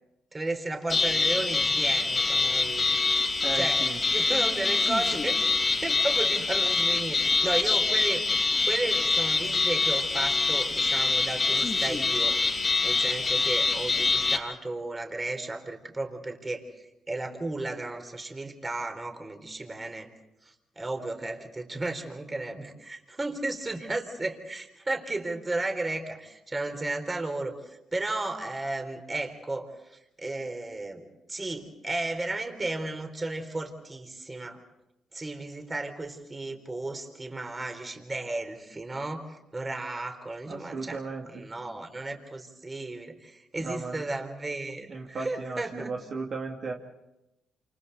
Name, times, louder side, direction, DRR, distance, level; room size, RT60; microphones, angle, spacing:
voice 1, 0.3-3.0 3.5-3.8 4.1-5.5 5.8-8.3 8.6-12.4 12.8-16.6 17.1-20.1 20.4-34.6 35.1-41.0 41.3-45.9, right 2 dB, 20° right, 5 dB, 4.1 m, -34 dB
sound 1, 0.9-14.4, left 3 dB, 35° left, 3.0 m, -25 dB
voice 2, 3.4-4.0 40.5-41.4 43.6-44.2 44.9-46.7, right 3 dB, 50° right, -1 dB, 2.7 m, -36 dB
29.0 x 28.5 x 4.2 m, 0.91 s
cardioid pair, 90°, 0 cm